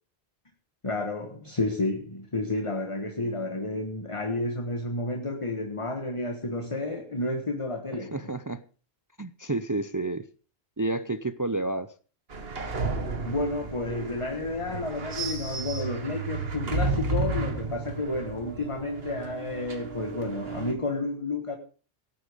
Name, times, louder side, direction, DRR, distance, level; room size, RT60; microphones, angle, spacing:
voice 1, 0.8-8.2 13.2-21.6, left 2 dB, 30° left, 1.5 m, -31 dB
voice 2, 8.1-8.6 9.2-10.3 10.8-11.9, right 2 dB, 25° right, 0.5 m, -30 dB
sound 1, 12.3-20.7, right 3 dB, 70° right, 1.9 m, -32 dB
18.0 x 8.6 x 5.1 m
omnidirectional pair, 1.1 m